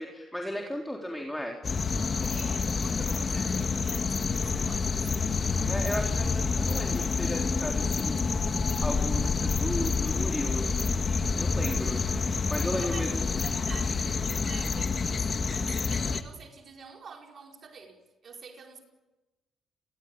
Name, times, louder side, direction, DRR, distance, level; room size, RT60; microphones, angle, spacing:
voice 1, 0.0-1.6 5.6-8.2 8.8-10.7 11.4-12.0 12.5-13.2, left 1 dB, 5° left, 3.8 m, -35 dB
sound 1, 1.6-16.2, left 4 dB, 40° left, 1.8 m, -28 dB
voice 2, 2.2-5.1 12.7-18.8, right 5 dB, 50° right, 4.9 m, -47 dB
29.0 x 21.5 x 8.9 m
cardioid pair, 90°, 0 cm